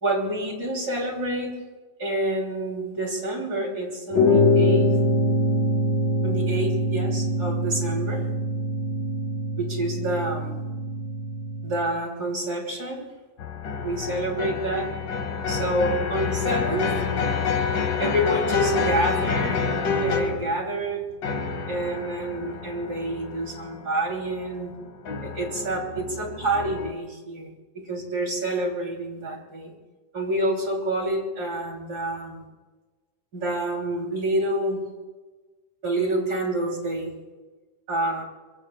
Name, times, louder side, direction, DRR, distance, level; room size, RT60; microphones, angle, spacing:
voice 1, 0.0-1.6 2.0-4.9 6.2-8.3 9.6-10.6 11.6-13.1 13.8-14.9 15.5-16.9 18.0-19.6 20.0-21.1 21.7-24.7 25.2-29.7 30.1-32.4 33.3-34.8 35.8-37.1 37.9-38.2, right 1 dB, 30° right, 0 dB, 3.1 m, -28 dB
sound 1, 4.1-11.8, left 1 dB, 80° left, 6.7 m, -23 dB
sound 2, 13.4-20.6 21.2-26.9, left 5 dB, 60° left, 1.1 m, -28 dB
26.5 x 24.0 x 2.3 m, 1.3 s
omnidirectional pair, 3.8 m